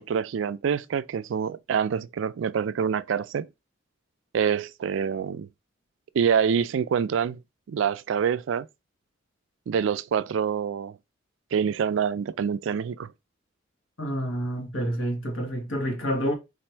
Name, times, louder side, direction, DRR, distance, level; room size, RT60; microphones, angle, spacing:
voice 1, 0.0-3.5 4.3-5.5 6.1-7.4 7.7-8.7 9.7-11.0 11.5-13.1, right 7 dB, 65° right, 0.3 m, -26 dB
voice 2, 14.0-16.3, equal, 80° left, 1.4 m, -28 dB
4.1 x 2.5 x 4.4 m
head